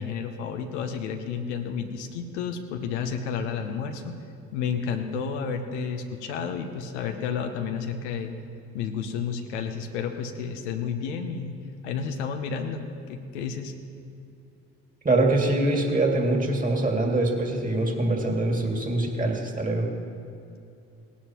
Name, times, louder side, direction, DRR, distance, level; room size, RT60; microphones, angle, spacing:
voice 1, 0.0-4.2 4.5-8.3 8.7-11.6 11.8-13.7, left 6 dB, 85° left, 5 dB, 0.9 m, -31 dB
voice 2, 15.0-19.9, right 2 dB, 25° right, 1 dB, 2.3 m, -24 dB
18.0 x 11.5 x 3.0 m, 2.6 s
hypercardioid pair, 50°, 34 cm